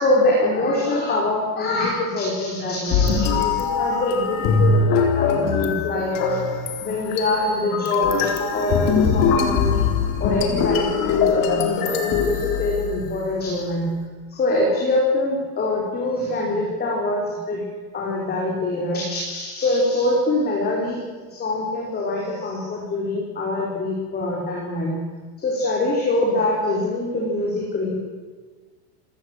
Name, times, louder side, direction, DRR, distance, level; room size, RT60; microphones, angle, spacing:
voice 1, 0.0-6.4 6.8-9.8 10.2-13.9 14.3-17.7 17.9-21.0 21.3-24.9 25.4-27.9, left 2 dB, 20° left, -2 dB, 4.6 m, -24 dB
sound 1, 2.9-13.2, left 5 dB, 45° left, 3.8 m, -22 dB
28.0 x 18.0 x 8.1 m, 1.4 s
supercardioid pair, 165°, 46 cm